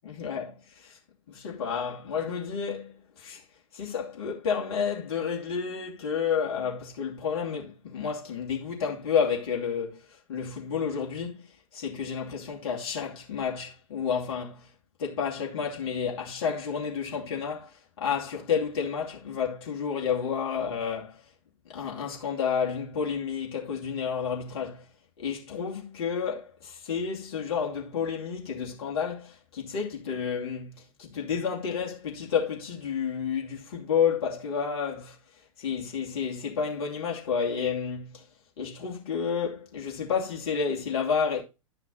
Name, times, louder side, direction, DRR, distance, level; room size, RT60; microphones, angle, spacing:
voice 1, 0.0-1.0 1.3-3.4 3.7-11.5 11.7-14.7 15.0-21.2 21.7-24.8 25.2-35.2 35.6-38.3 38.6-41.4, left 6 dB, 50° left, 2.6 m, -30 dB
10.5 x 5.8 x 4.1 m
figure-of-eight pair, 105°, 17 cm